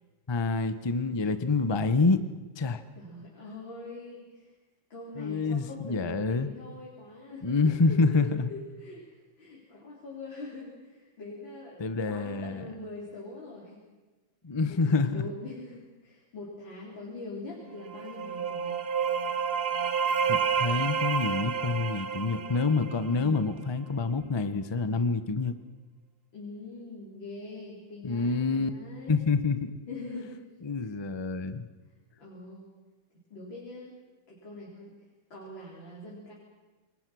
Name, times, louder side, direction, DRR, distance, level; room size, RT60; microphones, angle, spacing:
voice 1, 0.3-2.2 2.6-2.8 5.2-6.5 7.4-8.5 11.8-12.6 14.4-15.2 20.3-25.5 28.0-28.7 29.1-29.7 30.6-31.7, left 4 dB, 20° left, 11 dB, 0.7 m, -27 dB
voice 2, 3.0-4.5 4.9-13.8 14.7-18.8 23.1-23.5 26.3-29.3 29.9-30.4 30.8-30.9 32.2-32.7 33.3-34.0 34.3-34.9 35.3-36.3, left 2 dB, 85° left, -4 dB, 4.8 m, -43 dB
sound 1, 17.8-23.5, right 6 dB, 50° right, 0.7 m, -30 dB
27.5 x 22.5 x 6.3 m, 1.2 s
omnidirectional pair, 2.0 m